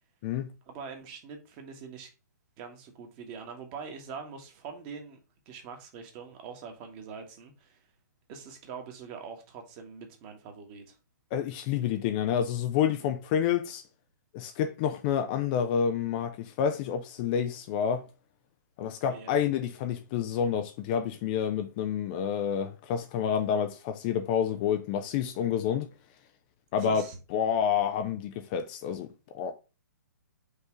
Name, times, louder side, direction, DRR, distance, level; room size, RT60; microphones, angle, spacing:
voice 1, 0.7-2.1 2.6-5.2 5.4-7.9 8.3-11.0 19.1-19.4 26.8-27.2, right 6 dB, 30° right, 1.5 m, -43 dB
voice 2, 11.3-13.8 14.3-18.0 18.8-25.9 26.7-27.0 27.3-29.1 29.3-29.5, left 8 dB, 30° left, 0.5 m, -28 dB
5.5 x 3.5 x 4.9 m
figure-of-eight pair, 120°, 10 cm